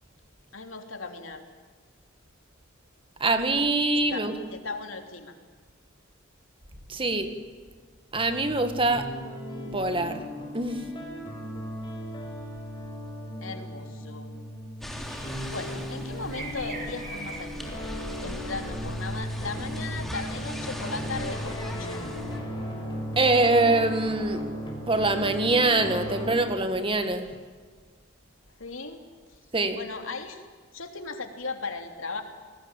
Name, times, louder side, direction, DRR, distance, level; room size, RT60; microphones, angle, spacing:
voice 1, 0.5-1.4 4.1-5.3 13.4-14.3 15.5-17.8 18.2-22.0 28.6-29.0 29.7-30.4 30.7-32.2, left 3 dB, 75° left, 5 dB, 3.1 m, -37 dB
voice 2, 3.2-4.3 6.9-7.3 8.1-9.1 9.7-10.2 10.5-10.8 23.2-24.4 24.9-27.3 29.5-29.8, right 2 dB, 25° right, 8 dB, 2.0 m, -24 dB
sound 1, 8.1-26.3, equal, 25° left, 6.3 m, -36 dB
sound 2, 14.8-22.4, equal, ahead, 3.4 m, -39 dB
sound 3, 15.0-18.2, right 3 dB, 45° right, 6.0 m, -43 dB
28.0 x 20.5 x 9.2 m, 1.5 s
head